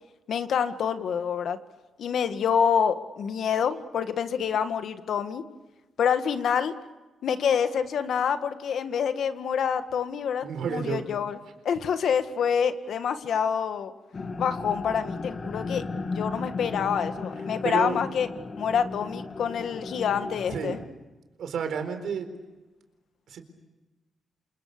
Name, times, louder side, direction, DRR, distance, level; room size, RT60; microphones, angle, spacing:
voice 1, 0.3-1.6 2.0-5.4 6.0-6.7 7.2-11.4 11.6-13.9 14.4-15.8 16.1-18.3 18.6-20.8, left 7 dB, 70° left, 9 dB, 1.9 m, -27 dB
voice 2, 10.4-11.0 17.6-18.0 20.5-20.8 21.4-22.3 23.3-23.4, right 6 dB, 75° right, 7 dB, 4.2 m, -30 dB
sound 1, 14.1-20.9, left 3 dB, 35° left, 2.3 m, -35 dB
28.5 x 27.5 x 6.9 m, 1.1 s
cardioid pair, 130°, 0 cm